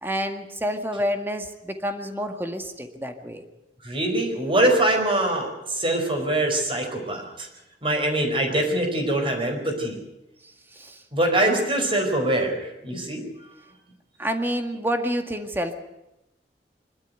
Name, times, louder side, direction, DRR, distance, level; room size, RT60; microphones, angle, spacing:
voice 1, 0.0-3.4 10.4-11.0 14.2-15.7, equal, 15° right, 6 dB, 1.9 m, -29 dB
voice 2, 3.8-7.5 7.8-10.0 11.1-13.2, right 1 dB, 30° right, 3 dB, 4.9 m, -23 dB
24.5 x 13.0 x 9.4 m, 0.93 s
head